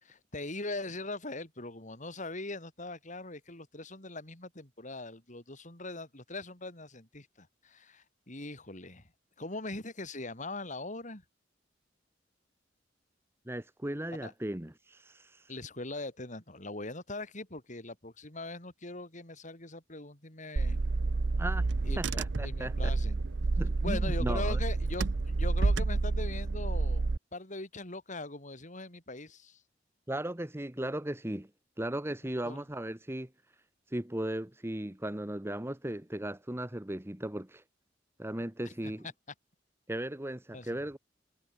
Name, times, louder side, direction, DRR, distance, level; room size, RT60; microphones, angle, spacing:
voice 1, 0.0-9.1 9.4-11.2 14.2-14.3 15.5-20.8 21.8-23.2 23.8-27.1 27.3-29.6 32.4-32.6 38.7-38.9 40.5-40.8, left 2 dB, 45° left, 5.7 m, -41 dB
voice 2, 13.5-15.5 21.4-21.6 22.0-22.9 23.6-24.6 30.1-31.5 31.8-33.3 33.9-37.6 38.2-39.1 39.9-41.0, right 1 dB, 15° right, 1.2 m, -36 dB
Car / Engine, 20.6-27.2, right 3 dB, 75° right, 0.7 m, -29 dB
head